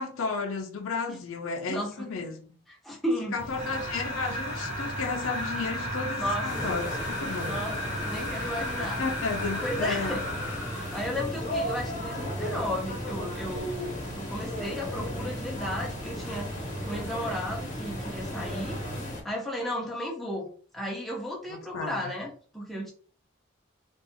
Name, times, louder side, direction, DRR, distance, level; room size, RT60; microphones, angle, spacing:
voice 1, 0.0-2.4 3.3-7.6 9.0-10.2 21.5-21.9, left 4 dB, 80° left, 0.4 m, -33 dB
voice 2, 1.7-2.1 2.7-3.3 6.2-6.6 7.4-9.0 9.6-10.2 10.9-16.5 16.9-18.8 19.2-20.5 20.7-22.9, equal, ahead, 0.5 m, -34 dB
sound 1, 3.4-19.2, right 2 dB, 75° right, 0.6 m, -39 dB
sound 2, 3.5-11.2, left 1 dB, 30° right, 0.8 m, -35 dB
sound 3, 6.4-19.2, left 1 dB, 35° left, 0.8 m, -37 dB
2.6 x 2.3 x 2.5 m
head